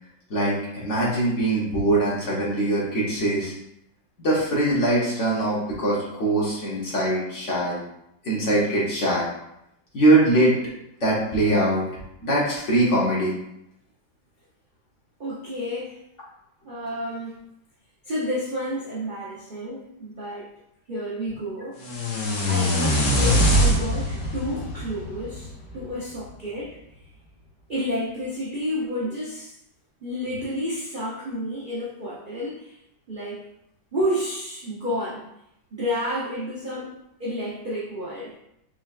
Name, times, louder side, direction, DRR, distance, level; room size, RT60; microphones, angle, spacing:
voice 1, 0.3-3.5 4.2-7.8 8.2-9.3 9.9-10.6 11.0-11.8 12.2-13.3, right 1 dB, 50° left, -5 dB, 1.1 m, -22 dB
voice 2, 15.2-16.0 16.6-17.4 18.0-20.5 20.9-21.8 22.5-26.8 27.7-29.6 30.0-32.8 33.1-33.4 33.9-35.3 35.7-38.4, equal, 65° right, -7 dB, 0.4 m, -30 dB
sound 1, 21.8-25.9, equal, 80° left, 1.6 m, -23 dB
4.4 x 3.3 x 2.4 m, 0.80 s
omnidirectional pair, 2.0 m